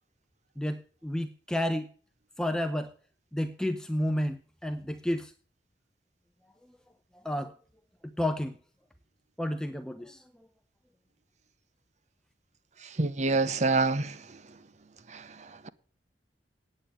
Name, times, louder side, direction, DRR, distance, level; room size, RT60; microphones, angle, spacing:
voice 1, 0.6-1.9 2.4-2.9 3.3-5.3 7.1-7.5 8.0-8.5 9.4-10.2, left 1 dB, 5° left, 0.7 m, -31 dB
voice 2, 12.8-14.4 15.1-15.7, right 3 dB, 40° right, 0.8 m, -28 dB
9.1 x 8.7 x 9.0 m
head